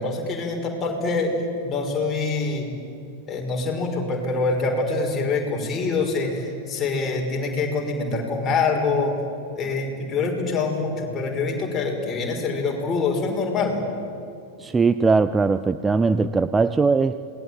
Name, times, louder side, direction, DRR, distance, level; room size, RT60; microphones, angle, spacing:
voice 1, 0.0-2.7 3.3-9.2 9.5-13.8, left 3 dB, 25° left, 0 dB, 5.3 m, -25 dB
voice 2, 14.6-17.2, right 4 dB, 15° right, 12 dB, 0.6 m, -20 dB
27.5 x 20.0 x 9.0 m, 2.5 s
figure-of-eight pair, 90°, 0 cm